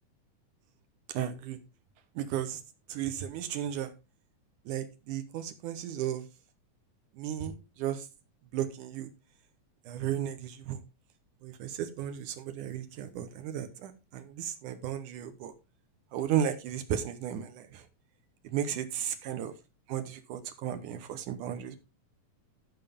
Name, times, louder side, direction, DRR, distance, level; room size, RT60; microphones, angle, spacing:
voice 1, 1.1-1.6 2.2-2.6 2.9-3.9 4.7-6.2 7.2-8.1 8.5-9.1 9.9-10.8 11.4-15.5 16.1-17.8 18.5-19.5 19.9-21.8, right 10 dB, 80° right, 8 dB, 2.5 m, -34 dB
14.5 x 5.9 x 3.5 m, 0.28 s
omnidirectional pair, 3.6 m